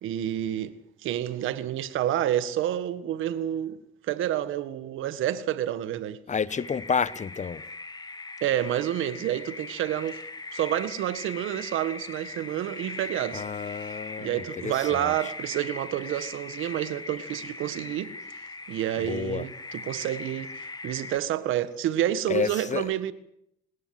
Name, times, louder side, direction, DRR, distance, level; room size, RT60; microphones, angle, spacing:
voice 1, 0.0-0.7 1.0-3.8 4.1-6.2 8.4-10.2 10.5-13.4 14.2-18.1 18.7-20.5 20.8-23.1, right 12 dB, 85° right, 1.7 m, -29 dB
voice 2, 6.3-7.6 13.3-15.1 19.0-19.5 22.3-22.9, left 6 dB, 35° left, 1.2 m, -30 dB
sound 1, 6.5-21.2, left 3 dB, 20° left, 2.0 m, -40 dB
27.0 x 20.0 x 7.8 m
cardioid pair, 90°, 20 cm